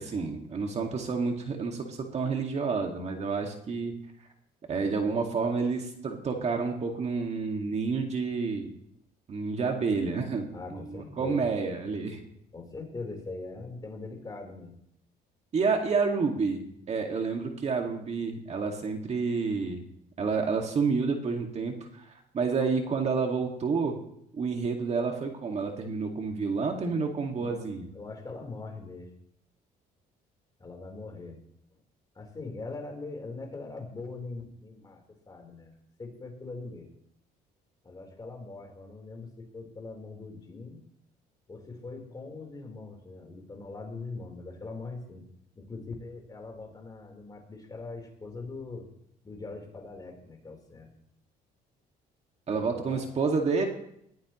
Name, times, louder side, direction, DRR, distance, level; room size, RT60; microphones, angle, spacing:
voice 1, 0.0-3.9 4.7-8.7 9.3-12.2 15.5-19.8 20.2-22.1 22.3-24.0 24.3-27.9 52.5-53.7, right 4 dB, 40° right, 2 dB, 2.2 m, -29 dB
voice 2, 10.5-11.5 12.5-14.7 15.7-15.8 27.4-27.7 27.9-29.1 30.6-31.4 32.1-35.7 36.0-36.9 37.8-40.8 41.5-45.2 45.5-48.9 49.2-50.9 52.5-53.1, left 3 dB, 25° left, 2 dB, 4.2 m, -42 dB
21.0 x 15.5 x 3.2 m, 0.73 s
cardioid pair, 110°, 17 cm